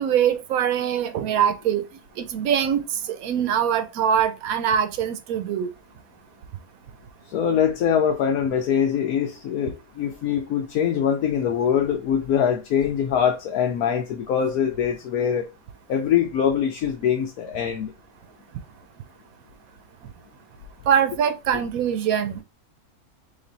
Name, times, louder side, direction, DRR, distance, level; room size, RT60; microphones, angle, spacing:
voice 1, 0.0-1.8 2.2-2.8 3.1-5.7 20.9-22.4, right 8 dB, 80° right, 1.1 m, -23 dB
voice 2, 7.3-15.5 15.9-17.9, left 8 dB, 90° left, 1.2 m, -23 dB
3.4 x 3.0 x 3.9 m
omnidirectional pair, 1.5 m